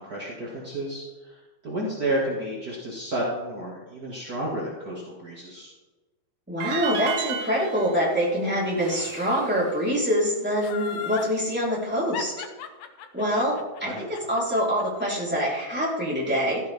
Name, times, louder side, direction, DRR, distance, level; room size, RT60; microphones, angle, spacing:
voice 1, 0.0-5.7 13.8-14.0, right 1 dB, 35° right, -5 dB, 1.5 m, -31 dB
voice 2, 6.5-12.3 13.1-16.6, equal, ahead, -7 dB, 3.9 m, -25 dB
sound 1, 6.6-9.8, right 8 dB, 75° right, 3.0 m, -35 dB
Sawing, 8.8-10.7, equal, 35° left, 6.1 m, -46 dB
Laughter, 10.6-11.3 12.1-15.2 15.6-15.7, left 7 dB, 85° left, 1.8 m, -36 dB
16.5 x 14.0 x 3.7 m, 1.2 s
omnidirectional pair, 5.2 m